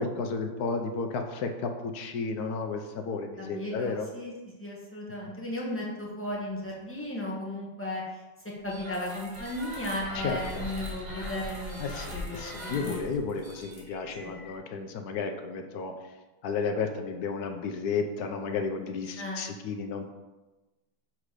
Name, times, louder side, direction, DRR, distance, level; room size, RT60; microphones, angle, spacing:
voice 1, 0.0-4.1 5.2-5.3 10.1-10.6 11.8-15.9 16.4-20.1, left 4 dB, 65° left, 5 dB, 1.1 m, -33 dB
voice 2, 3.4-4.3 4.6-8.0 8.6-11.9 12.1-13.0 14.2-14.4 19.2-19.5, left 1 dB, 10° left, -4 dB, 1.2 m, -35 dB
sound 1, 8.6-14.6, equal, 50° right, 2.2 m, -40 dB
7.4 x 3.9 x 4.8 m, 1.1 s
omnidirectional pair, 2.0 m